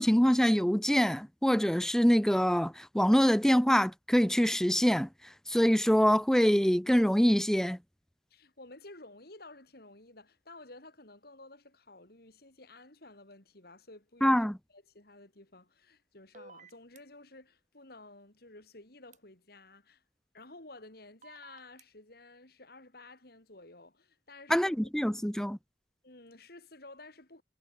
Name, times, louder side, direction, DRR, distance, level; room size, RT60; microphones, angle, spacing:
voice 1, 0.0-5.1 5.5-7.8 14.2-14.6 24.5-25.6, equal, 5° left, 0.6 m, -25 dB
voice 2, 8.3-14.4 14.7-20.0 20.3-24.9 26.0-27.4, left 2 dB, 55° left, 3.9 m, -53 dB
sound 1, 16.3-17.0 19.1-19.2 21.2-21.8, right 3 dB, 40° right, 7.2 m, -53 dB
head